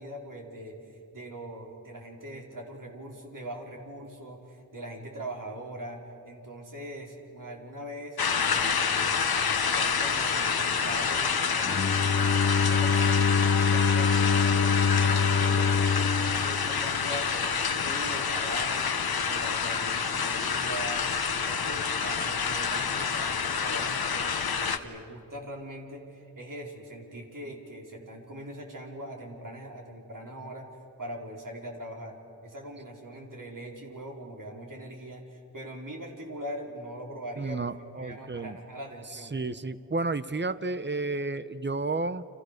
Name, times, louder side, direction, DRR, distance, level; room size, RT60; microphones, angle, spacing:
voice 1, 0.0-11.8 12.6-15.7 16.2-32.2 32.4-39.4, right 1 dB, 60° right, 0 dB, 4.6 m, -41 dB
sound 1, 8.2-24.8, left 6 dB, 85° left, 1.2 m, -28 dB
Bowed string instrument, 11.6-17.6, left 5 dB, 40° left, 0.8 m, -25 dB
voice 2, 37.4-38.6 39.3-42.3, right 3 dB, 30° right, 14 dB, 1.0 m, -31 dB
30.0 x 27.5 x 6.7 m, 2.7 s
wide cardioid pair, 75°, 36 cm